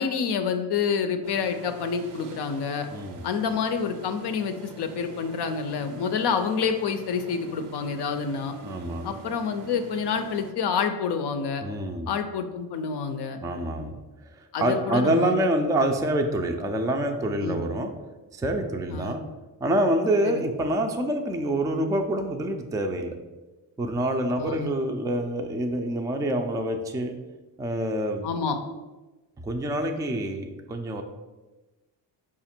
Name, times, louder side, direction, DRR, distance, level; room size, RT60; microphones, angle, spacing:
voice 1, 0.0-2.9 3.2-8.5 9.0-11.6 12.1-13.4 14.5-15.5 17.4-17.6 18.9-19.1 20.2-20.4 24.4-24.7 28.2-28.6, left 6 dB, 65° left, 7 dB, 0.6 m, -28 dB
sound 1, 1.2-10.5, right 6 dB, 65° right, 0.6 m, -45 dB
voice 2, 2.9-3.2 8.6-9.1 11.6-12.1 13.4-13.9 14.6-17.9 18.3-19.2 19.6-23.2 23.8-27.2 27.6-28.3 29.4-31.0, right 1 dB, 10° right, 4 dB, 0.4 m, -26 dB
4.9 x 2.4 x 4.3 m, 1.2 s
cardioid pair, 75°, 45 cm